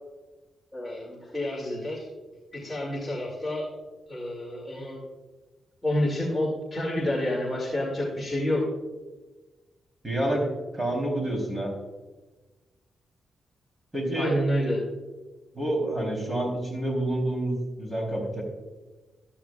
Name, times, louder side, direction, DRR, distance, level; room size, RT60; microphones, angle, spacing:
voice 1, 0.7-2.1 2.5-3.7 4.1-5.0 5.8-8.6 14.2-14.8, left 1 dB, ahead, -3 dB, 2.4 m, -29 dB
voice 2, 10.0-10.5 10.7-11.7 13.9-14.4 15.5-18.4, right 1 dB, 15° right, 0 dB, 3.3 m, -28 dB
14.5 x 11.5 x 2.4 m, 1.2 s
cardioid pair, 120°, 0 cm